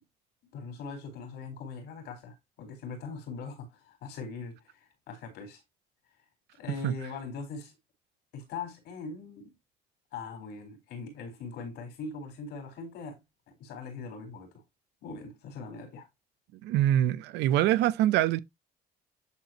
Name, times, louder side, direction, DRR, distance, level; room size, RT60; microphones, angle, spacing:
voice 1, 0.5-5.6 6.6-7.7 8.3-9.5 10.1-13.2 13.6-14.6 15.0-16.1, left 4 dB, 80° left, 4.3 m, -41 dB
voice 2, 16.6-18.4, right 12 dB, 90° right, 0.8 m, -24 dB
11.0 x 4.5 x 2.9 m
cardioid pair, 110°, 17 cm